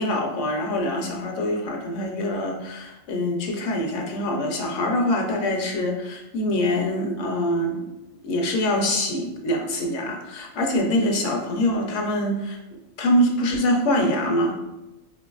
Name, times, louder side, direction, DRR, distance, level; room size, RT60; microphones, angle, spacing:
voice 1, 0.0-7.9 8.2-12.6 13.0-14.5, left 1 dB, 65° left, 1 dB, 0.9 m, -24 dB
4.4 x 2.6 x 2.3 m, 0.98 s
omnidirectional pair, 1.5 m